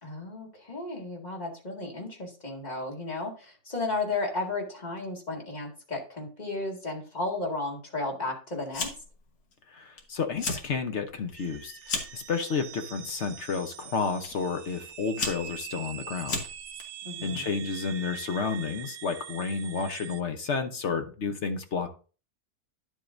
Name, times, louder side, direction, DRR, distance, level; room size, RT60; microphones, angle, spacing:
voice 1, 0.0-8.9 17.0-17.6, left 2 dB, 25° left, 0 dB, 2.1 m, -34 dB
Fire, 8.7-9.2 9.5-10.0 10.3-10.7 11.1-12.2 13.0-13.4 14.2-14.3 14.9-16.8, left 4 dB, 70° left, 2.0 m, -34 dB
voice 2, 9.7-11.8 12.1-16.4 17.2-21.9, left 5 dB, 50° left, 7 dB, 1.1 m, -31 dB
sound 1, 11.4-20.2, right 10 dB, 85° right, 1.3 m, -43 dB
10.5 x 7.4 x 2.6 m, 0.37 s
omnidirectional pair, 1.7 m